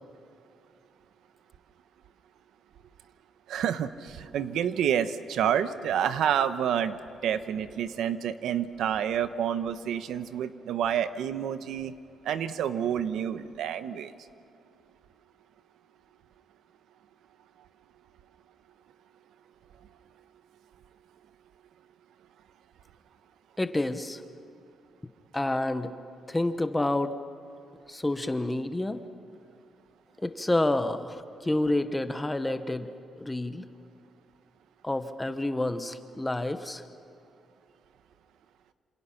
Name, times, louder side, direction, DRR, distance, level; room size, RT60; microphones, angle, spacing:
voice 1, 3.5-11.9 12.2-14.1, right 9 dB, 90° right, 11 dB, 1.1 m, -29 dB
voice 2, 23.6-24.2 25.3-25.9 26.3-27.1 27.9-29.0 30.2-32.9 33.2-33.7 34.8-36.8, left 1 dB, 10° left, 9 dB, 1.0 m, -29 dB
27.5 x 27.0 x 5.9 m, 2.7 s
cardioid pair, 175°, 0 cm